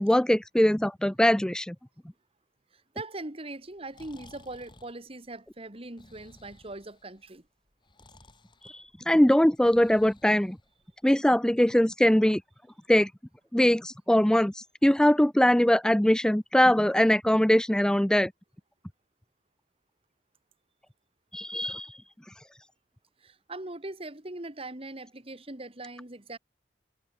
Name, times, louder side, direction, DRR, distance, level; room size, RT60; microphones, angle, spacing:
voice 1, 0.0-1.7 8.6-10.6 11.0-12.4 12.9-13.1 13.5-18.3 21.3-22.0, left 1 dB, 5° left, 0.4 m, -22 dB
voice 2, 2.7-7.5 23.2-26.4, right 2 dB, 30° right, 2.1 m, -41 dB
Breathing, 3.7-11.1, left 2 dB, 25° left, 4.2 m, -57 dB
head